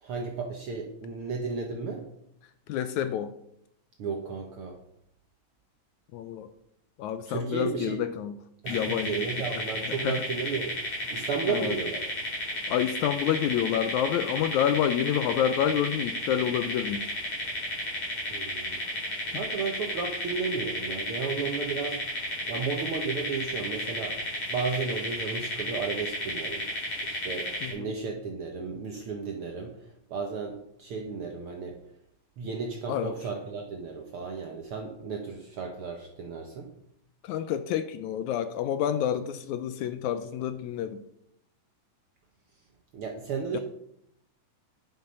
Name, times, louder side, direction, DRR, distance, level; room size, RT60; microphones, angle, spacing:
voice 1, 0.0-2.0 4.0-4.8 7.3-8.0 8.6-10.8 11.1-12.0 18.3-18.8 19.3-22.2 22.5-24.2 24.5-26.7 27.0-29.8 30.1-31.7 32.4-36.7 42.9-43.6, right 5 dB, 60° right, 2 dB, 1.5 m, -33 dB
voice 2, 2.7-3.3 6.1-6.5 7.0-8.4 8.7-9.3 9.5-10.2 11.5-11.8 12.7-17.2 19.3-19.4 27.6-27.9 32.9-33.2 37.2-41.0 43.5-43.6, left 10 dB, 80° left, 11 dB, 1.8 m, -28 dB
sound 1, 8.7-27.7, left 1 dB, 50° left, 5.6 m, -33 dB
10.5 x 7.8 x 5.3 m, 0.75 s
omnidirectional pair, 3.7 m